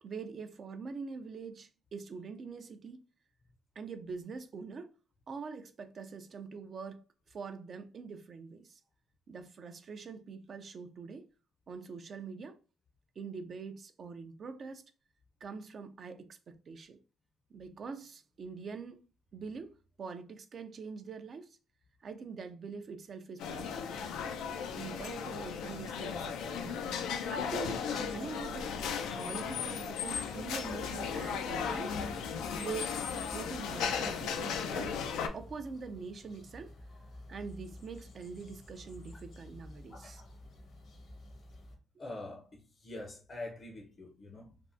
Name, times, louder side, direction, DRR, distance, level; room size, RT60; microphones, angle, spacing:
voice 1, 0.0-3.0 3.8-4.9 5.3-8.8 9.3-11.2 11.7-12.6 13.2-14.8 15.4-17.0 17.5-19.0 19.3-21.6 22.0-23.9 24.8-26.8 27.1-28.7 29.2-32.0 32.6-34.9 35.3-36.7 37.3-40.2, right 5 dB, 50° right, 0.4 m, -44 dB
sound 1, 23.4-35.3, left 6 dB, 90° left, 0.4 m, -36 dB
sound 2, 30.1-41.8, left 1 dB, 70° left, 1.0 m, -52 dB
voice 2, 39.9-40.4 42.0-44.6, left 2 dB, 40° left, 0.6 m, -45 dB
3.4 x 2.0 x 2.6 m
cardioid pair, 90°, 0 cm